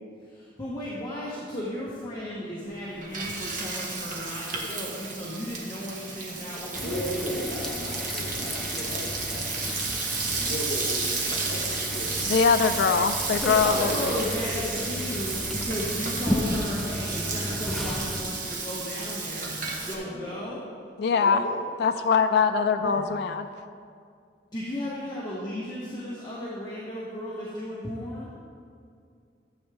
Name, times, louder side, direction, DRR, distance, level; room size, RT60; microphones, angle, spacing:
voice 1, 0.2-7.0 13.4-20.6 22.8-23.1 24.5-28.3, left 1 dB, 25° left, -7 dB, 1.3 m, -35 dB
Frying (food), 2.7-19.9, right 4 dB, 50° right, 1.4 m, -32 dB
sound 1, 6.7-18.2, left 1 dB, ahead, 0.6 m, -34 dB
voice 2, 6.8-9.8 10.3-12.2 13.5-14.3 14.6-15.2 19.8-20.3 21.1-21.6, equal, 45° left, -9 dB, 2.6 m, -36 dB
voice 3, 12.2-14.1 21.0-21.4 21.8-23.5, left 5 dB, 65° left, 8 dB, 0.3 m, -22 dB
12.0 x 8.0 x 3.5 m, 2.3 s
head